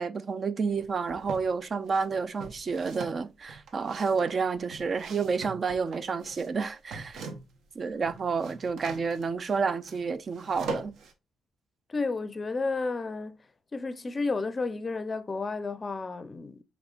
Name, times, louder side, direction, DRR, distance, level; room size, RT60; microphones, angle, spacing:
voice 1, 0.0-7.2 7.8-10.9, right 5 dB, 40° right, 0.3 m, -30 dB
sound 1, 0.7-1.5 1.9-7.7 7.9-11.1, right 3 dB, 70° right, 0.8 m, -42 dB
voice 2, 11.9-13.4 13.7-16.6, left 3 dB, 30° left, 0.5 m, -32 dB
4.9 x 3.5 x 2.3 m
cardioid pair, 90°, 0 cm